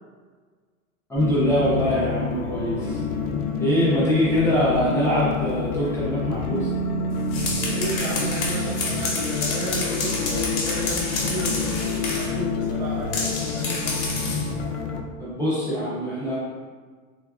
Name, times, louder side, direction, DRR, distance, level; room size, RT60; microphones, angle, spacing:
voice 1, 1.1-3.0 3.6-6.7 15.2-16.4, equal, 5° left, -10 dB, 0.3 m, -23 dB
sound 1, 1.2-15.0, left 6 dB, 65° left, 0.6 m, -28 dB
Bass guitar, 6.5-12.7, right 10 dB, 50° right, 0.8 m, -34 dB
sound 2, 7.1-12.4 13.1-14.5, left 3 dB, 85° left, 0.9 m, -29 dB
voice 2, 7.6-14.0, right 2 dB, 85° right, -3 dB, 0.9 m, -33 dB
3.4 x 2.2 x 2.3 m, 1.5 s
hypercardioid pair, 120°, 41 cm